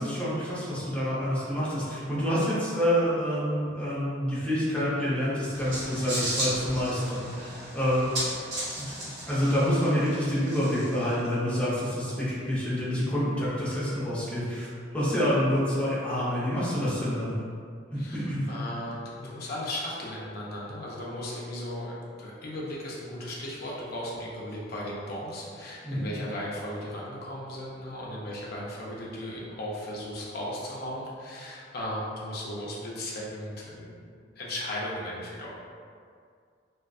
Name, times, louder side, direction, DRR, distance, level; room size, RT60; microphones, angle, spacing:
voice 1, 0.0-8.2 8.8-8.9 9.3-14.7 14.9-17.4 17.9-18.4 25.8-26.1, equal, 5° left, -11 dB, 0.6 m, -27 dB
sound 1, 5.5-11.3, right 1 dB, 75° right, 1.0 m, -35 dB
voice 2, 18.0-35.5, left 1 dB, 55° left, -5 dB, 0.5 m, -36 dB
2.5 x 2.1 x 2.3 m, 2.2 s
head